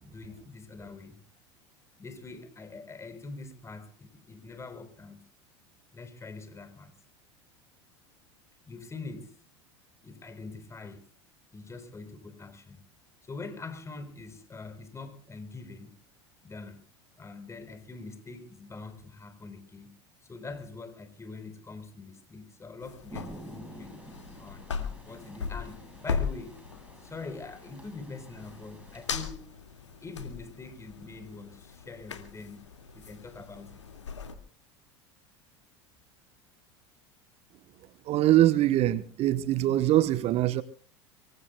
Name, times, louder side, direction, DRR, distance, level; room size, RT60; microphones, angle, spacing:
voice 1, 0.0-1.2 2.0-5.3 5.9-7.0 8.7-9.4 10.0-11.1 11.5-12.8 13.3-15.9 16.4-16.8 17.2-19.9 20.3-24.0 24.4-26.6 27.0-29.5 30.0-32.7 32.9-33.8, left 3 dB, 20° left, 4.0 m, -44 dB
sound 1, 22.8-34.4, left 6 dB, 85° left, 2.2 m, -39 dB
Rain, 23.1-29.3, right 2 dB, 10° right, 6.8 m, -49 dB
voice 2, 38.1-40.6, right 14 dB, 45° right, 1.1 m, -23 dB
25.0 x 23.5 x 2.3 m
hypercardioid pair, 80°, 15 cm